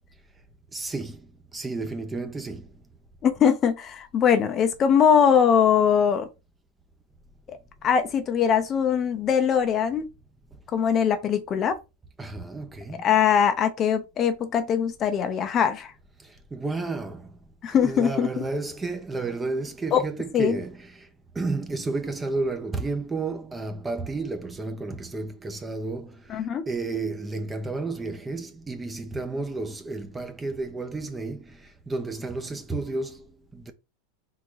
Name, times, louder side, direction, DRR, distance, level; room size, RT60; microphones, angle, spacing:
voice 1, 0.7-1.2 1.5-2.7 12.2-13.0 16.2-17.4 17.7-21.1 21.3-33.7, right 3 dB, 15° right, 0.8 m, -32 dB
voice 2, 3.2-6.3 7.5-7.6 7.8-10.1 10.7-11.8 13.0-15.9 17.6-18.4 19.9-20.0 20.3-20.6 26.3-26.6, left 7 dB, 30° left, 0.7 m, -21 dB
3.7 x 3.7 x 3.1 m
supercardioid pair, 130°, 0 cm